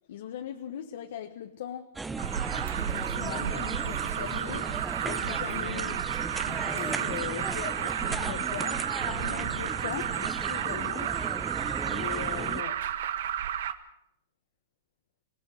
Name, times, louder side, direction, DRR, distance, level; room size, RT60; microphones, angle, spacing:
voice 1, 0.1-2.0 2.8-11.5 11.8-12.9, left 10 dB, 65° left, 1.3 m, -40 dB
sound 1, 2.0-12.6, right 3 dB, 10° right, 0.8 m, -36 dB
Alarm, 2.2-13.7, right 10 dB, 70° right, 1.5 m, -32 dB
26.5 x 18.5 x 6.6 m
supercardioid pair, 160°, 0 cm